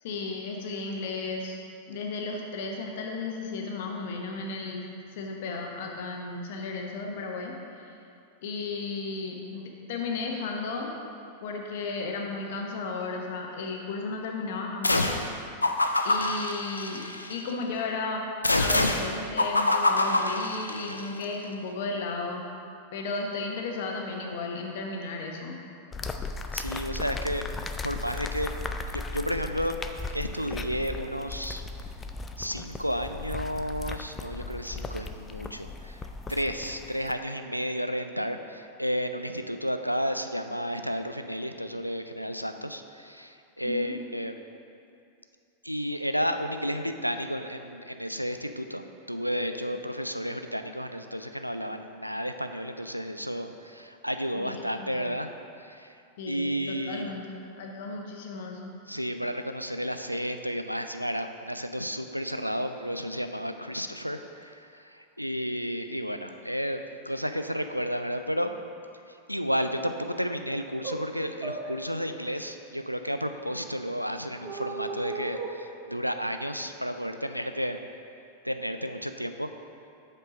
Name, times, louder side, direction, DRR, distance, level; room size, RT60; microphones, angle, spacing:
voice 1, 0.0-1.6 1.9-4.8 5.1-7.5 8.4-10.9 11.4-15.3 16.0-17.0 17.3-18.3 18.5-22.5 22.9-25.6 43.6-44.0 54.3-55.1 56.2-58.7, left 3 dB, 55° left, 1 dB, 1.0 m, -34 dB
sound 1, 14.8-15.3 15.6-17.4 18.4-21.0, left 2 dB, 80° left, 0.4 m, -25 dB
sound 2, 25.9-37.1, left 3 dB, 15° left, 0.4 m, -37 dB
voice 2, 26.5-27.5 27.8-28.5 28.9-29.8 30.1-31.6 32.4-36.0 36.3-44.3 45.6-55.3 55.6-56.0 56.3-57.1 58.9-68.6 69.3-77.8 78.4-79.5, equal, 90° right, 7 dB, 0.4 m, -32 dB
sound 3, 70.5-70.6 70.8-71.0 71.4-71.7 74.4-75.5, right 4 dB, 40° right, 0.9 m, -35 dB
8.0 x 4.4 x 5.2 m, 2.5 s
figure-of-eight pair, 90°, 0 cm